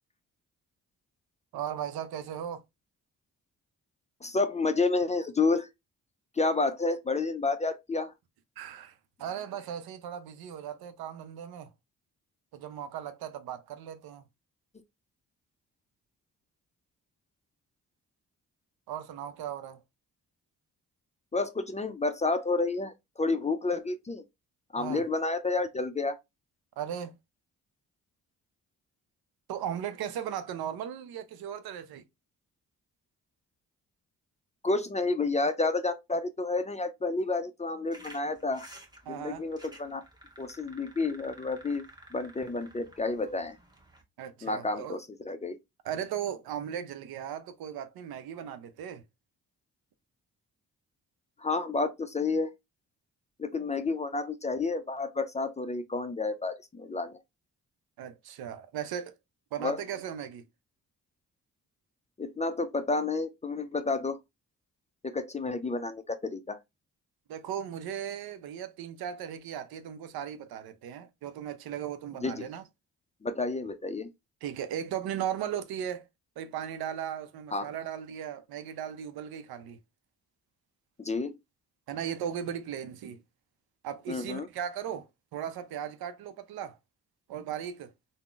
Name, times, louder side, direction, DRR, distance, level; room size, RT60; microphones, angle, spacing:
voice 1, 1.5-2.6 8.6-11.7 12.5-14.2 18.9-19.8 24.8-25.0 26.8-27.1 29.5-32.0 39.1-39.4 44.2-45.0 45.8-49.0 58.0-59.1 59.5-60.4 67.3-72.6 74.4-76.0 76.4-79.8 81.9-83.2 83.8-86.8 87.3-87.9, right 9 dB, 70° right, 0.6 m, -37 dB
voice 2, 4.2-5.7 6.4-8.1 21.3-24.2 24.7-26.2 34.6-38.7 39.1-40.0 40.4-41.8 42.1-43.6 44.4-45.6 51.4-52.5 53.4-57.2 59.6-59.8 62.2-64.2 65.0-66.6 72.2-72.5 73.2-74.1 77.5-77.7 81.0-81.3 84.1-84.5, left 3 dB, 20° left, 0.4 m, -30 dB
sound 1, 37.9-44.0, right 1 dB, 10° right, 1.0 m, -53 dB
3.5 x 2.1 x 2.3 m
supercardioid pair, 45°, 38 cm